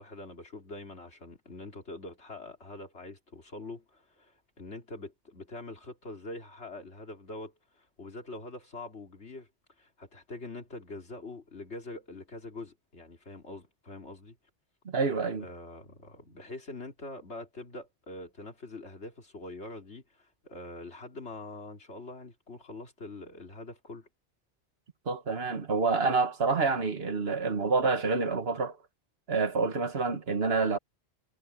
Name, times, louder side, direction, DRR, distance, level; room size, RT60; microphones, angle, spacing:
voice 1, 0.0-9.5 9.8-14.4 15.4-24.1, left 2 dB, 90° left, 3.3 m, -44 dB
voice 2, 14.9-15.5 25.1-28.8 29.3-30.8, right 4 dB, 65° right, 1.7 m, -28 dB
omnidirectional pair, 1.1 m